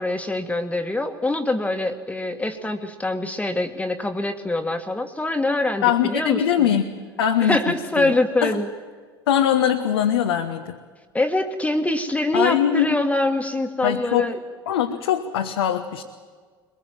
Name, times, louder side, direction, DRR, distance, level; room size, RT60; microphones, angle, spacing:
voice 1, 0.0-6.8 7.4-8.7 11.1-14.4, left 2 dB, 10° left, 6 dB, 1.8 m, -24 dB
voice 2, 5.8-6.8 7.2-7.6 8.0-8.1 8.4-8.6 9.3-10.8 12.3-13.0 13.8-14.3 14.7-16.0, left 9 dB, 80° left, 3 dB, 1.2 m, -21 dB
22.5 x 21.5 x 7.5 m, 1.5 s
hypercardioid pair, 70°, 13 cm